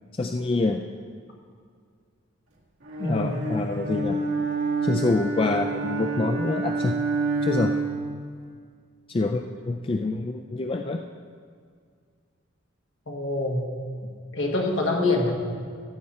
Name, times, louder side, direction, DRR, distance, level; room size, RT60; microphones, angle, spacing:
voice 1, 0.1-0.8 3.0-4.2 4.8-7.0 7.4-7.8 9.1-11.0, left 3 dB, 25° left, 4 dB, 0.3 m, -26 dB
Bowed string instrument, 2.9-8.1, right 3 dB, 75° right, 1.8 m, -28 dB
voice 2, 3.0-3.4 13.1-13.6 14.3-15.3, left 2 dB, 60° left, 0 dB, 1.6 m, -25 dB
15.0 x 7.7 x 4.3 m, 2.1 s
head